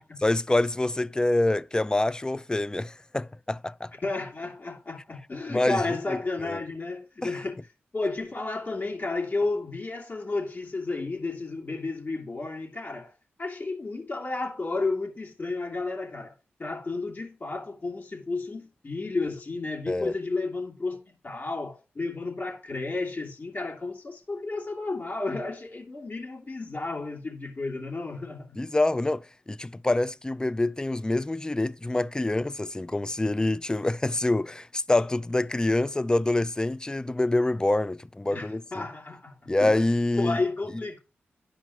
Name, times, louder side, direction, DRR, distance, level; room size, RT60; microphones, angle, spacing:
voice 1, 0.2-3.9 5.5-6.2 6.4-6.6 7.2-7.3 19.9-20.1 28.6-38.8 39.5-40.4, left 2 dB, 20° left, 0.4 m, -26 dB
voice 2, 4.0-7.6 7.9-13.1 13.4-16.3 16.6-28.6 38.3-39.8 40.1-41.0, left 3 dB, 45° left, 2.8 m, -32 dB
11.5 x 5.1 x 3.0 m
cardioid pair, 50°, 4 cm